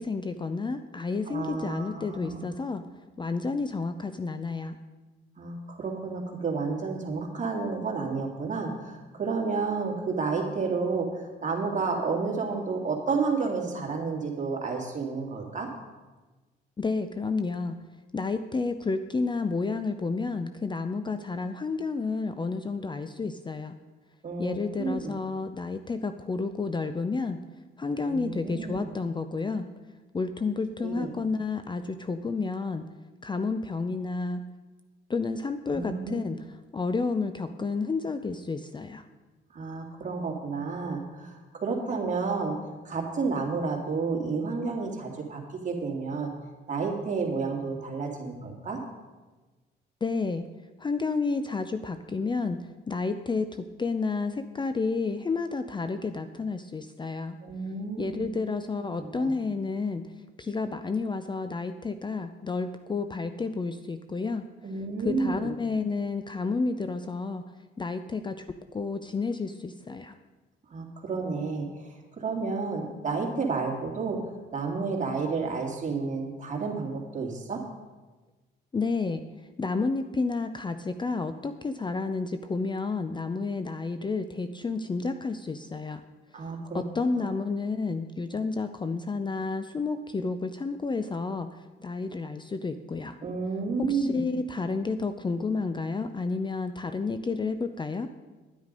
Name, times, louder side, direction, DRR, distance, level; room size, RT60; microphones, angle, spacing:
voice 1, 0.0-2.8 3.2-4.8 16.8-17.8 18.1-23.8 24.4-27.4 27.8-29.7 30.1-32.9 33.2-34.5 35.1-36.5 36.7-39.0 50.0-50.5 50.8-57.4 58.0-60.1 60.4-64.5 65.0-67.5 67.8-70.1 78.7-79.2 79.6-86.0 86.7-93.2 93.8-98.1, left 4 dB, 25° left, 9 dB, 0.5 m, -30 dB
voice 2, 1.3-2.5 5.4-15.7 24.2-25.2 28.0-28.8 30.8-31.1 35.7-36.2 39.5-42.6 42.8-46.3 46.7-48.8 57.4-58.3 59.0-59.3 64.6-65.5 70.7-77.6 86.3-86.8 87.2-87.3 93.2-94.2, right 4 dB, 40° right, 0 dB, 2.6 m, -31 dB
10.0 x 9.6 x 5.3 m, 1.2 s
cardioid pair, 90°, 20 cm